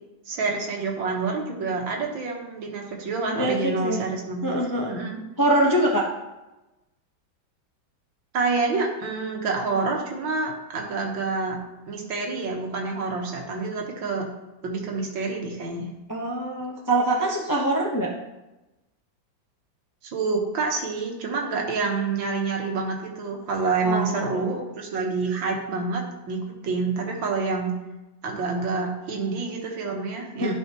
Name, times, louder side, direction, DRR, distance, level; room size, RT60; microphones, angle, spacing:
voice 1, 0.3-4.6 4.9-5.2 8.3-11.6 11.9-14.2 14.6-15.9 20.0-27.7 28.2-30.5, right 4 dB, 80° right, 1 dB, 2.0 m, -27 dB
voice 2, 3.3-4.0 4.4-5.0 5.4-6.1 16.1-18.1 23.8-24.5 30.4-30.5, right 1 dB, 25° left, -2 dB, 0.4 m, -24 dB
12.0 x 5.0 x 2.9 m, 1.0 s
omnidirectional pair, 2.1 m